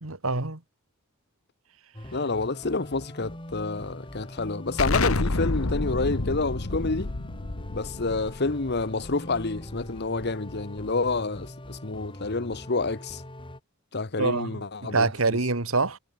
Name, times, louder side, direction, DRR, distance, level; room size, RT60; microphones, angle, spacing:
voice 1, 0.0-0.6 14.2-16.0, right 3 dB, 70° right, 2.1 m, -26 dB
sound 1, 1.9-13.6, left 1 dB, 25° left, 4.0 m, -42 dB
voice 2, 2.1-7.1 7.7-13.2 13.9-15.4, left 3 dB, 50° left, 1.2 m, -29 dB
Explosion, 4.8-10.2, left 3 dB, 80° left, 1.4 m, -29 dB
head